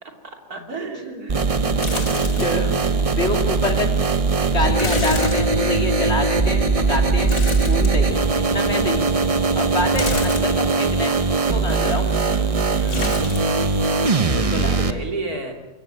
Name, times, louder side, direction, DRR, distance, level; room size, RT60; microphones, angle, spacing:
voice 1, 0.0-2.4 8.1-8.3 12.8-13.3 14.5-15.5, right 2 dB, 70° right, 4 dB, 3.5 m, -34 dB
sound 1, 1.3-14.9, right 4 dB, 30° right, 0.8 m, -20 dB
sound 2, 1.8-2.7 3.1-3.2 4.8-6.0 7.3-8.4 10.0-10.8 12.9-13.6 13.8-14.5 14.8-14.9, left 3 dB, 60° left, 2.8 m, -30 dB
voice 2, 2.4-3.9 4.3-7.3 7.7-9.1 9.5-12.5 13.1-13.5 14.3-15.0, left 2 dB, 40° left, 4 dB, 3.2 m, -27 dB
27.0 x 15.5 x 9.2 m, 1.1 s
omnidirectional pair, 1.7 m